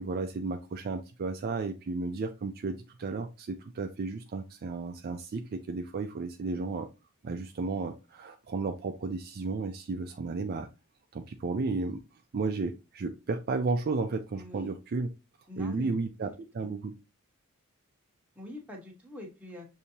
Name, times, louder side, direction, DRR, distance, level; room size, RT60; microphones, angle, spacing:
voice 1, 0.0-6.9 7.2-10.7 11.1-12.0 12.3-15.1 15.6-16.9, right 3 dB, 45° right, 0.4 m, -33 dB
voice 2, 14.4-14.7 15.5-15.9 16.2-16.3 16.6-16.7 18.3-19.7, left 1 dB, 5° right, 1.1 m, -44 dB
6.6 x 2.7 x 2.8 m
head